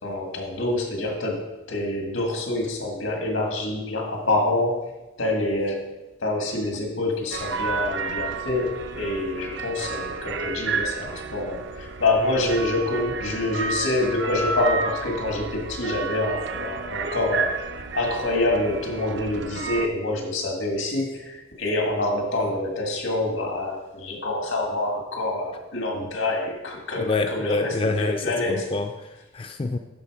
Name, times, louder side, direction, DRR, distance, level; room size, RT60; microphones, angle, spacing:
voice 1, 0.0-4.9 5.2-5.9 6.2-17.5 18.0-28.7, left 2 dB, 90° left, 1 dB, 1.9 m, -26 dB
sound 1, 7.3-19.9, right 4 dB, 65° right, 0.5 m, -31 dB
voice 2, 27.0-29.8, left 3 dB, 25° left, 6 dB, 0.3 m, -27 dB
11.5 x 3.9 x 4.9 m, 1.0 s
head